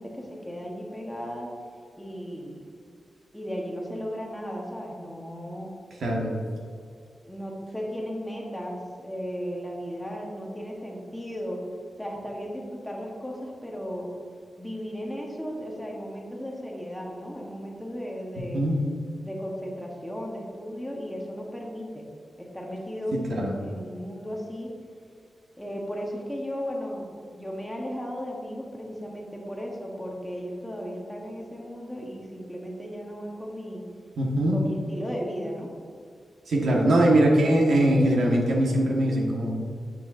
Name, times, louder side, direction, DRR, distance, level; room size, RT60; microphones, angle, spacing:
voice 1, 0.0-1.5 2.0-2.7 3.3-5.7 7.3-11.6 12.0-14.1 14.6-18.6 19.2-22.0 22.4-24.7 25.6-27.0 27.3-33.8 34.5-35.7, equal, 5° left, -2 dB, 0.9 m, -35 dB
voice 2, 6.0-6.3 18.5-18.8 23.1-23.5 34.2-34.6 36.5-39.5, right 1 dB, 80° right, -1 dB, 1.3 m, -22 dB
8.9 x 6.9 x 2.5 m, 2.2 s
wide cardioid pair, 175°, 0 cm